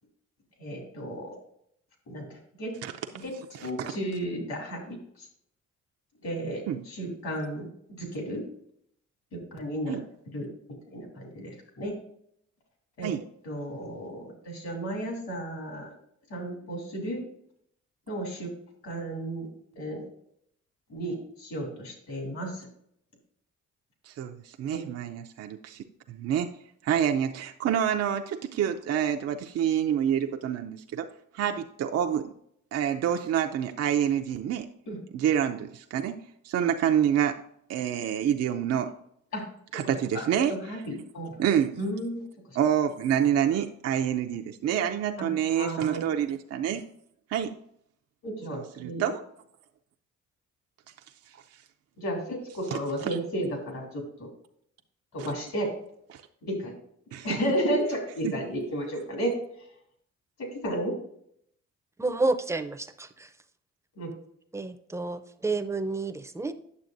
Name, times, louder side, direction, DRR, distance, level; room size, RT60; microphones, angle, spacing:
voice 1, 0.6-1.3 2.1-2.7 3.2-3.3 3.6-5.3 6.2-7.7 8.0-8.4 9.3-10.0 10.3-10.5 10.9-11.9 13.0-13.1 13.4-15.9 16.3-17.2 18.1-18.5 18.8-19.5 19.7-20.0 20.9-22.7 24.7-24.8 34.9-35.0 39.3-39.4 40.1-40.2 40.7-41.3 41.8-42.2 42.5-42.6 45.2-45.3 45.6-46.0 48.2-49.0 52.0-54.3 55.1-55.7 56.4-56.7 57.2-59.3 60.4-61.0 64.0-64.1, right 1 dB, 65° left, 1 dB, 3.0 m, -33 dB
voice 2, 3.5-3.9 6.7-6.8 9.9-10.0 13.0-13.2 24.1-26.5 26.8-31.1 31.3-32.3 32.7-34.7 35.1-36.2 36.4-37.4 37.7-38.9 39.7-40.8 41.4-41.8 42.5-46.8 47.3-47.6 48.5-49.2 51.3-51.6 52.7-53.2 55.2-55.3 56.1-56.2 57.1-57.4 58.2-58.3, right 9 dB, 55° right, 5 dB, 0.5 m, -27 dB
voice 3, 62.0-63.3 64.5-66.5, right 3 dB, 10° right, 8 dB, 0.6 m, -30 dB
9.4 x 6.8 x 2.6 m, 0.70 s
cardioid pair, 90°, 30 cm